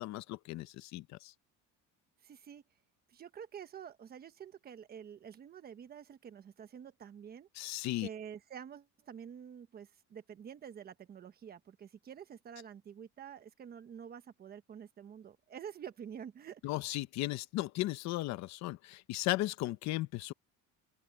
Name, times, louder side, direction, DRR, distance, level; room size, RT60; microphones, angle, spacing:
voice 1, 0.0-1.3 7.5-8.1 16.6-20.3, left 17 dB, 60° left, 0.9 m, -36 dB
voice 2, 2.2-2.6 3.1-7.5 8.0-16.6, right 8 dB, 30° right, 1.2 m, -48 dB
open air
cardioid pair, 170°, 32 cm